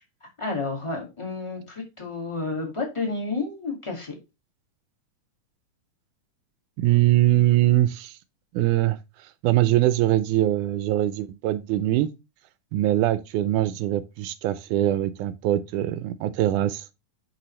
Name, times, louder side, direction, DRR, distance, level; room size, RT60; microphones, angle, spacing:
voice 1, 0.2-4.2, left 3 dB, 15° left, 1.1 m, -31 dB
voice 2, 6.8-8.2 8.5-9.0 9.4-12.1 12.7-16.8, right 14 dB, 80° right, 1.9 m, -22 dB
8.7 x 5.4 x 3.1 m
omnidirectional pair, 4.0 m